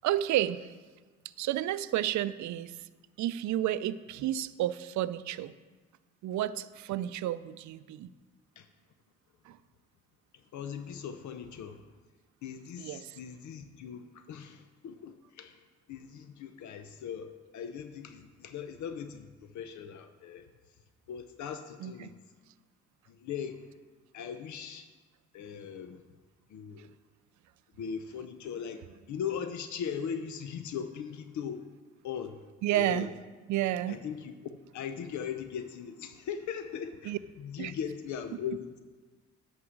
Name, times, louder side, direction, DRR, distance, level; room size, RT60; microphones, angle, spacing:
voice 1, 0.0-0.7 1.4-2.7 3.2-5.5 6.2-8.1 9.5-9.6 12.8-13.2 21.8-22.1 32.6-33.1 33.5-34.0 37.0-37.2 37.6-37.7, right 13 dB, 70° right, 15 dB, 0.5 m, -31 dB
voice 2, 10.5-11.8 12.4-15.6 15.9-20.5 21.1-22.2 23.1-23.7 24.1-24.9 25.3-26.0 26.5-26.9 27.8-28.8 29.1-31.6 32.0-32.4 32.7-33.1 33.9-34.3 34.7-38.8, left 7 dB, 70° left, 8 dB, 0.7 m, -39 dB
11.0 x 4.9 x 6.3 m, 1.4 s
cardioid pair, 90°, 30 cm